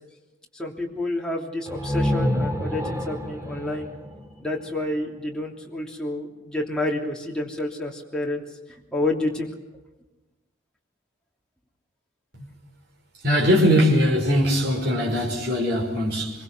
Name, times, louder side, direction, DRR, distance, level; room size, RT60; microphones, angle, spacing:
voice 1, 0.5-3.9 4.4-8.4 8.9-9.5, left 1 dB, 5° left, 3.1 m, -29 dB
sound 1, 1.6-5.4, left 1 dB, 15° right, 2.0 m, -28 dB
voice 2, 13.2-16.3, equal, 55° right, 5.2 m, -20 dB
25.0 x 23.5 x 6.3 m
head